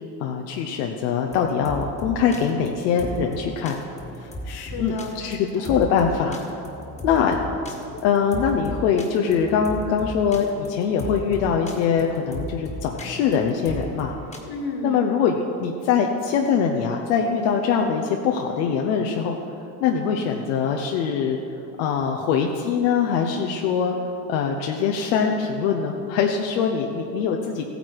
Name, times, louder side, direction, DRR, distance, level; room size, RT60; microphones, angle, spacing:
voice 1, 0.2-3.8 4.8-5.0 5.3-6.5 7.0-7.4 8.0-14.1 14.8-19.4 19.8-21.4 21.8-23.9 24.3-27.6, left 6 dB, 75° left, 2 dB, 1.1 m, -23 dB
sound 1, 1.2-14.4, equal, 15° left, 1.6 m, -36 dB
voice 2, 4.2-5.7 14.5-15.0, left 3 dB, 50° left, 3 dB, 2.0 m, -33 dB
14.5 x 9.4 x 4.7 m, 2.7 s
supercardioid pair, 105°, 48 cm